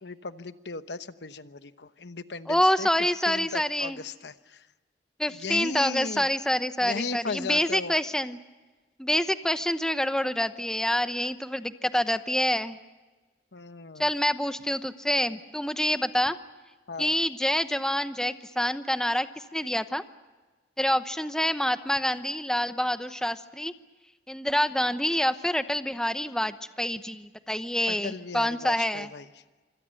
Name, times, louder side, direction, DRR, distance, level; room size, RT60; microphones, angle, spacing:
voice 1, 0.0-2.9 3.2-4.7 5.3-6.3 6.8-7.9 13.5-14.1 16.9-17.1 27.9-29.3, left 4 dB, 75° left, 11 dB, 1.1 m, -36 dB
voice 2, 2.5-4.0 5.2-8.4 9.0-12.8 14.0-16.4 17.0-20.0 20.8-23.7 24.3-29.1, left 1 dB, 5° left, 10 dB, 0.8 m, -27 dB
26.5 x 26.5 x 6.5 m, 1.2 s
head